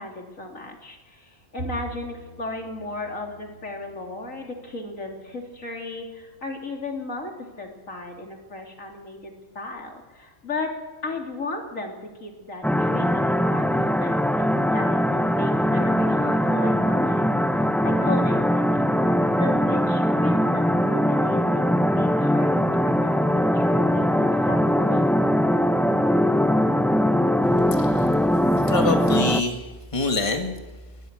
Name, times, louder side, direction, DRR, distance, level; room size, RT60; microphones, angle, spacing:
voice 1, 0.0-10.7 11.0-17.3 17.7-19.1 19.4-25.1, left 2 dB, 90° left, 2 dB, 3.7 m, -35 dB
Bowed string instrument, 1.6-7.9, right 2 dB, 60° right, 5.7 m, -44 dB
sound 1, 12.6-29.4, equal, ahead, 0.6 m, -21 dB
voice 2, 27.7-28.1 28.6-29.7 29.9-30.5, left 3 dB, 25° left, 4 dB, 2.1 m, -25 dB
23.0 x 19.0 x 6.5 m, 1.2 s
omnidirectional pair, 1.3 m